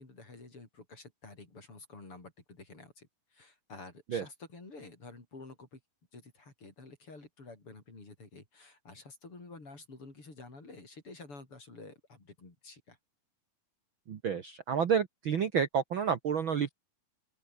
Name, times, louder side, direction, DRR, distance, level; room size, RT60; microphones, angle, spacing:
voice 1, 0.0-5.8 6.1-13.0, left 3 dB, 45° left, 6.8 m, -50 dB
voice 2, 14.1-16.7, right 7 dB, 50° right, 1.7 m, -30 dB
open air
omnidirectional pair, 3.5 m